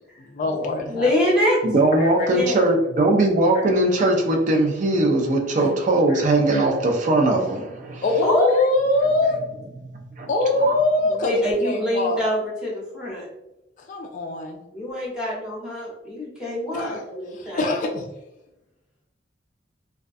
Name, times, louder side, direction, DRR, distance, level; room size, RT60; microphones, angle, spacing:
voice 1, 0.0-1.1 2.0-2.3 5.6-5.7 6.1-6.2 8.0-9.4 10.3-12.2 13.9-14.6 16.7-17.0 17.3-18.1, left 2 dB, 45° left, 2 dB, 0.3 m, -23 dB
voice 2, 0.9-1.6 2.3-2.6 8.2-8.5 11.1-13.3 14.7-17.7, left 1 dB, 5° right, -7 dB, 0.9 m, -24 dB
voice 3, 1.6-8.0 10.2-10.3 10.6-10.7, right 2 dB, 45° right, 2 dB, 0.4 m, -20 dB
2.3 x 2.2 x 2.5 m, 0.90 s
head